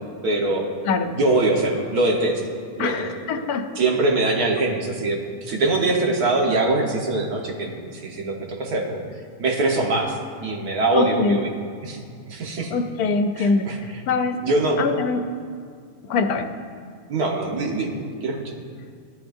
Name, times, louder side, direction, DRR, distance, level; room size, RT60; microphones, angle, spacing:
voice 1, 0.2-0.7 1.2-2.4 2.8-3.1 3.8-9.0 9.4-11.5 11.8-12.0 12.3-12.7 13.4-13.8 14.4-14.8 17.1-18.4, right 2 dB, 85° right, 0 dB, 1.9 m, -23 dB
voice 2, 0.8-1.2 2.8-3.8 10.9-11.4 12.7-14.4 14.8-15.3 16.0-16.5, left 4 dB, 85° left, 7 dB, 1.2 m, -23 dB
16.5 x 12.0 x 2.6 m, 2.2 s
omnidirectional pair, 1.6 m